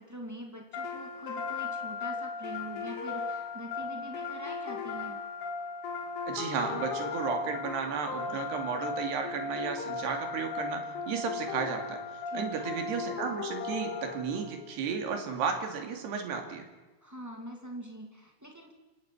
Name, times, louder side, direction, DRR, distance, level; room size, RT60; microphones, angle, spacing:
voice 1, 0.0-5.2 12.2-12.7 17.0-18.7, equal, 20° right, 1 dB, 0.5 m, -44 dB
sound 1, 0.7-14.6, left 4 dB, 80° left, 4.6 m, -37 dB
voice 2, 6.3-12.0 12.3-16.7, right 6 dB, 65° right, 5 dB, 4.4 m, -33 dB
28.0 x 17.5 x 6.2 m, 1.2 s
omnidirectional pair, 5.5 m